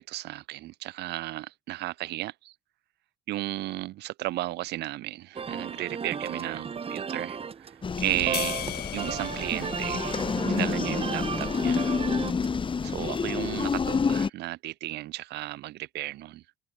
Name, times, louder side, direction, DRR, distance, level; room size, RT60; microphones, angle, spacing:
voice 1, 0.0-2.5 3.3-8.6 8.9-12.0 12.8-16.4, right 17 dB, 80° right, 6.1 m, -34 dB
sound 1, 5.3-12.6, right 6 dB, 35° right, 5.2 m, -35 dB
sound 2, 7.8-14.3, left 5 dB, 30° left, 3.9 m, -29 dB
sound 3, 8.3-10.9, left 14 dB, 70° left, 3.7 m, -38 dB
open air
cardioid pair, 110°, 17 cm